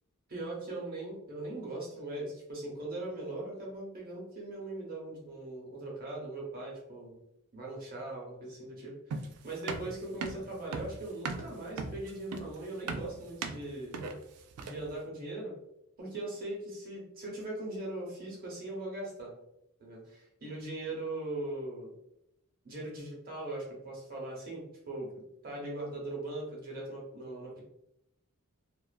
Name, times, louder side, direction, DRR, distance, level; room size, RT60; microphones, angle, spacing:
voice 1, 0.3-7.2 7.5-8.9 9.2-14.0 14.6-15.5 16.0-19.3 19.8-21.9 22.6-25.1 25.4-27.6, right 2 dB, 45° right, -3 dB, 0.8 m, -40 dB
sound 1, 9.1-15.0, right 4 dB, 85° right, 0.3 m, -38 dB
2.4 x 2.4 x 2.2 m, 0.81 s
head